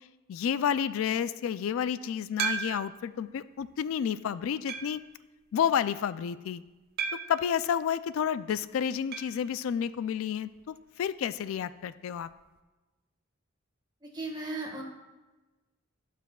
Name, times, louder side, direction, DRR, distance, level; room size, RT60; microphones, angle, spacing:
voice 1, 0.3-5.0 5.5-6.6 7.3-12.3, left 8 dB, 80° left, 16 dB, 0.3 m, -30 dB
sound 1, 2.4-3.1 3.7-3.8 4.7-5.1 7.0-7.5 9.1-9.4 9.7-9.8 10.0-10.1 12.1-12.2, right 6 dB, 50° right, 0.6 m, -34 dB
voice 2, 14.0-14.8, right 2 dB, 20° right, 1 dB, 1.5 m, -36 dB
16.0 x 5.9 x 2.3 m, 1.2 s
head